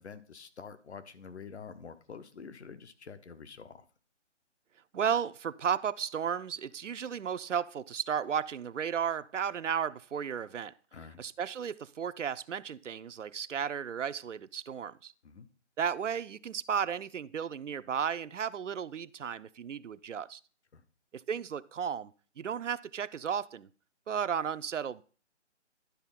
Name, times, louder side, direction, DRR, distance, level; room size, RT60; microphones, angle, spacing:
voice 1, 0.0-3.8 10.9-11.2 15.2-15.5 20.7-20.8, left 6 dB, 65° left, 10 dB, 1.2 m, -47 dB
voice 2, 4.9-10.7 11.2-15.1 15.8-20.4 21.1-23.7 24.1-25.0, right 7 dB, 85° right, 14 dB, 0.6 m, -34 dB
11.5 x 4.2 x 5.7 m, 0.40 s
hypercardioid pair, 155°, 36 cm